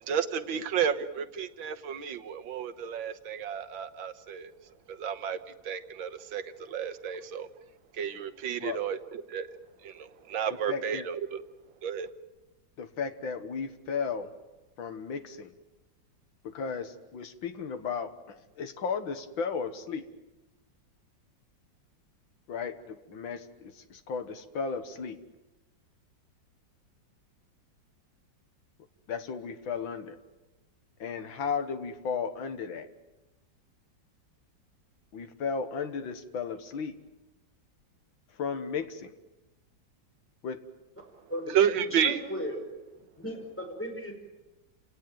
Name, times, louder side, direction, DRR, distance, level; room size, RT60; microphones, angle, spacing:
voice 1, 0.0-4.5 4.9-7.5 7.9-9.5 9.8-11.4 11.8-12.1 41.2-42.2, right 8 dB, 90° right, 11 dB, 1.9 m, -31 dB
voice 2, 10.7-11.1 12.8-14.3 14.8-15.5 16.4-20.0 22.5-25.2 29.1-30.2 31.0-32.9 35.1-36.9 38.4-39.1 40.4-40.6, left 5 dB, 90° left, 9 dB, 2.2 m, -35 dB
voice 3, 41.3-42.6 43.2-44.1, equal, 5° left, 2 dB, 5.7 m, -36 dB
29.5 x 18.0 x 9.2 m, 1.1 s
omnidirectional pair, 2.1 m